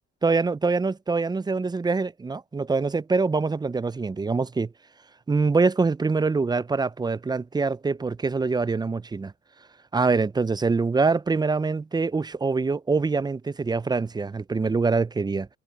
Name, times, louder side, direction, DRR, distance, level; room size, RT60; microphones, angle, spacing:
voice 1, 0.2-4.7 5.3-9.3 9.9-15.5, right 4 dB, 15° right, 0.4 m, -24 dB
cardioid pair, 90°, 30 cm